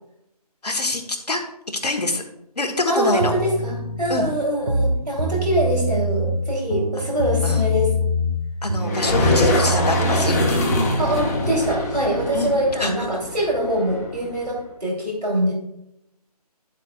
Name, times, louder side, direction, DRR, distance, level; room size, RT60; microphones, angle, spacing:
voice 1, 0.6-1.0 1.3-1.4 1.8-2.2 2.6-3.3 4.1-4.3 7.4-7.7 8.6-10.7 12.3-12.5 12.8-12.9, left 2 dB, 80° left, 4 dB, 1.4 m, -25 dB
voice 2, 2.9-7.9 11.0-15.5, equal, 90° right, -1 dB, 3.3 m, -23 dB
sound 1, 3.2-4.3 4.6-6.4 6.7-8.4 8.7-11.1, equal, 70° right, 1.3 m, -24 dB
sound 2, 8.8-14.5, left 2 dB, 25° left, 1.1 m, -23 dB
10.5 x 7.4 x 2.4 m, 0.82 s
figure-of-eight pair, 155°, 20 cm